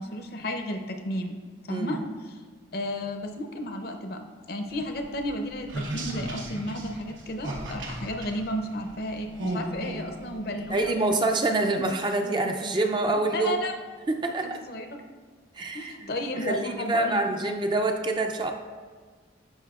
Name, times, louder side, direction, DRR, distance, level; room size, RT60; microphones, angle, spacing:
voice 1, 0.0-1.3 1.7-2.0 2.2-2.3 2.7-11.2 13.1-13.8 14.4-14.9 15.7-17.2, left 1 dB, 55° left, 5 dB, 0.7 m, -33 dB
sound 1, 4.7-11.1, right 1 dB, 90° right, 1.2 m, -37 dB
voice 2, 10.7-13.5 14.1-14.6 15.6-18.5, right 2 dB, 25° right, 3 dB, 0.4 m, -26 dB
12.0 x 5.0 x 2.4 m, 1.5 s
head